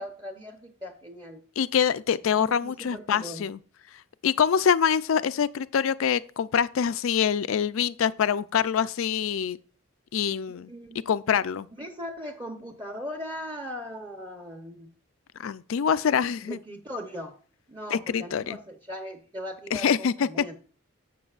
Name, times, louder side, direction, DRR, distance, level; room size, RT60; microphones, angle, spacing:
voice 1, 0.0-1.4 2.4-3.5 10.7-11.1 11.8-14.9 16.4-17.4 17.7-20.5, equal, 20° right, 0.8 m, -39 dB
voice 2, 1.6-3.6 4.2-9.6 10.1-10.7 11.1-11.7 15.4-16.6 17.9-18.6 19.7-20.3, left 7 dB, 80° left, 0.4 m, -25 dB
11.5 x 7.8 x 2.4 m
head